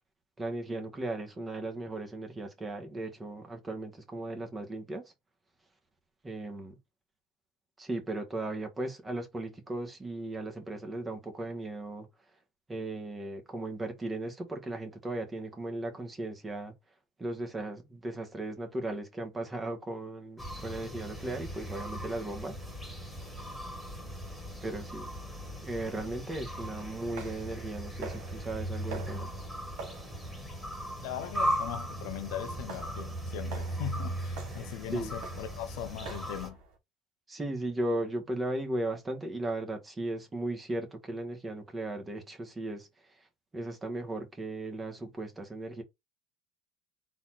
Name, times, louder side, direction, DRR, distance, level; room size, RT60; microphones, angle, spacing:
voice 1, 0.4-5.1 6.2-6.8 7.8-12.1 12.7-16.7 17.2-22.5 24.6-25.1 25.6-29.3 34.9-35.1 37.3-42.9 43.5-45.8, right 2 dB, 20° right, 1.5 m, -36 dB
sound 1, 20.4-36.5, equal, ahead, 2.0 m, -38 dB
sound 2, 27.2-36.8, right 4 dB, 70° right, 1.6 m, -48 dB
voice 2, 31.0-36.6, left 11 dB, 75° left, 0.8 m, -39 dB
4.2 x 2.8 x 4.2 m
supercardioid pair, 110°, 0 cm